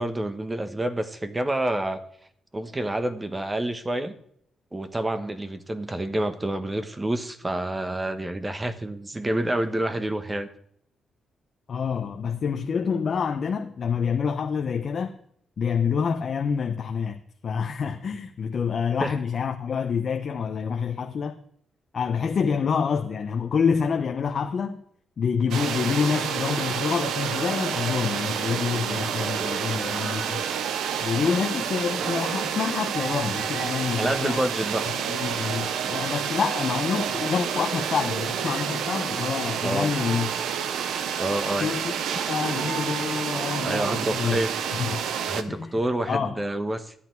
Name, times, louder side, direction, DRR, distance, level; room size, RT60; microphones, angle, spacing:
voice 1, 0.0-2.0 2.5-4.1 4.7-10.5 19.0-19.1 34.0-34.8 39.6-39.9 41.2-41.7 43.6-44.5 45.3-46.9, right 1 dB, 20° right, 1.3 m, -28 dB
voice 2, 11.7-15.1 15.6-21.4 21.9-24.8 25.2-30.4 31.0-34.4 35.1-40.4 41.5-41.9 42.3-44.4 44.7-45.0 45.5-45.8 46.1-46.4, left 6 dB, 55° left, 0.9 m, -27 dB
sound 1, 25.5-45.4, right 8 dB, 80° right, 0.8 m, -29 dB
13.0 x 9.0 x 4.7 m
cardioid pair, 75°, 0 cm